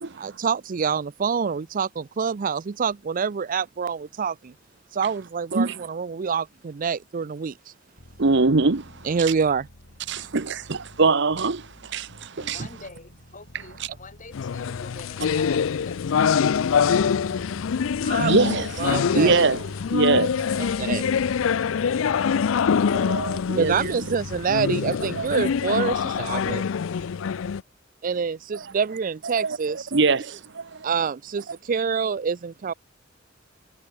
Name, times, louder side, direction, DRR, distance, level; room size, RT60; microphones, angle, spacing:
voice 1, 0.2-4.5 4.9-7.7 9.0-9.7 18.0-18.5 18.8-19.4 20.6-21.1 23.6-26.6 28.0-29.9 30.8-32.7, right 6 dB, 45° right, 0.4 m, -26 dB
sound 1, 8.0-25.6, left 1 dB, 65° left, 4.8 m, -44 dB
voice 2, 8.2-9.1 10.1-12.6 18.2-19.6 19.9-20.3 22.9-23.7 25.2-25.4 28.5-28.6 29.4-31.0, right 3 dB, 65° right, 1.0 m, -23 dB
voice 3, 12.4-17.6 18.9-19.6, left 3 dB, 40° left, 5.1 m, -46 dB
sound 2, 14.3-27.6, left 6 dB, 90° left, 0.4 m, -24 dB
head